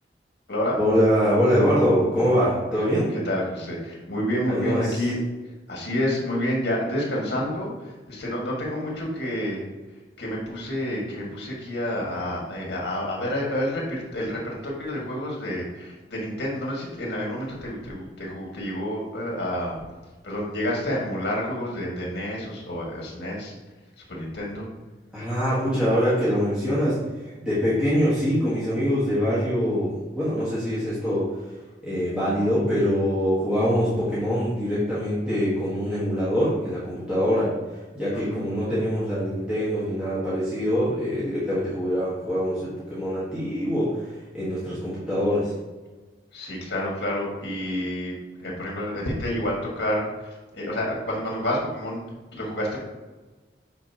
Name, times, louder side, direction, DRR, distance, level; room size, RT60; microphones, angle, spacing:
voice 1, 0.8-3.1 4.5-5.0 25.1-31.5 31.8-45.5, equal, 5° right, -11 dB, 1.6 m, -24 dB
voice 2, 3.3-5.2 5.7-9.6 10.2-19.8 20.2-23.5 24.1-24.7 38.1-38.4 46.3-48.1 48.4-52.0 52.3-52.8, left 1 dB, 65° left, -2 dB, 1.8 m, -29 dB
9.2 x 4.1 x 3.0 m, 1.3 s
head